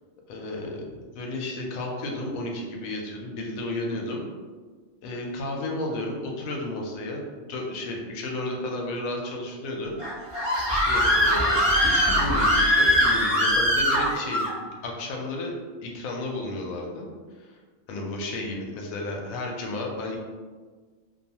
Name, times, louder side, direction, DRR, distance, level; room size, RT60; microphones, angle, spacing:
voice 1, 0.3-4.3 5.0-9.9 10.7-17.1 17.4-17.6 17.9-20.2, left 2 dB, 85° left, 0 dB, 1.0 m, -33 dB
Screaming, 10.0-14.5, equal, 35° right, 0.4 m, -21 dB
2.5 x 2.3 x 2.7 m, 1.4 s
omnidirectional pair, 1.4 m